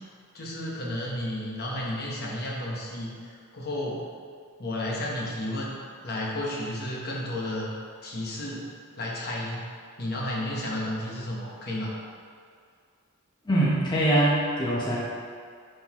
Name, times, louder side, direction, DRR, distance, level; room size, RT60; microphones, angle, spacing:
voice 1, 0.3-3.2 3.5-4.0 4.6-5.7 6.0-7.7 8.0-8.7 9.0-9.6 10.0-11.9, left 1 dB, 50° left, -4 dB, 1.2 m, -32 dB
voice 2, 13.4-15.0, right 1 dB, 20° left, -7 dB, 1.0 m, -23 dB
10.0 x 4.1 x 3.0 m, 2.2 s
head